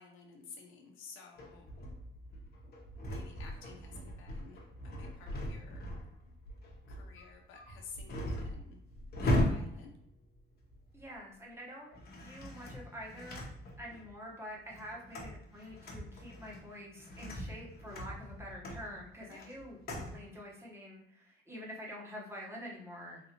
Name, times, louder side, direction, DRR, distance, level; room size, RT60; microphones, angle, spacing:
voice 1, 0.0-1.7 3.0-6.0 6.9-8.8 9.2-9.9 19.3-19.4, left 5 dB, 90° left, 3 dB, 0.7 m, -53 dB
sound 1, 1.4-11.2 11.9-14.1 14.5-20.2, left 1 dB, 50° left, 1.0 m, -39 dB
voice 2, 10.9-12.0 12.2-13.5 13.8-19.8 20.1-23.2, equal, 15° right, -3 dB, 1.1 m, -47 dB
3.3 x 2.6 x 2.9 m, 0.74 s
cardioid pair, 90°, 20 cm